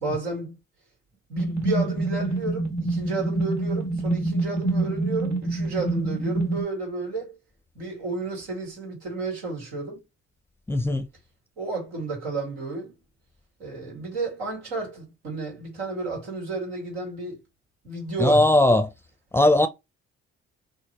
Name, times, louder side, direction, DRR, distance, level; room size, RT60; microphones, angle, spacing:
voice 1, 0.0-0.5 1.3-7.4 7.8-10.0 11.6-12.9 13.6-17.4 17.8-18.5, right 3 dB, 90° right, 1.7 m, -32 dB
sound 1, 1.4-6.6, right 2 dB, 55° right, 1.5 m, -26 dB
voice 2, 10.7-11.1 18.2-18.9 19.3-19.7, left 1 dB, 5° left, 0.5 m, -18 dB
3.4 x 2.0 x 2.9 m
hypercardioid pair, 50°, 32 cm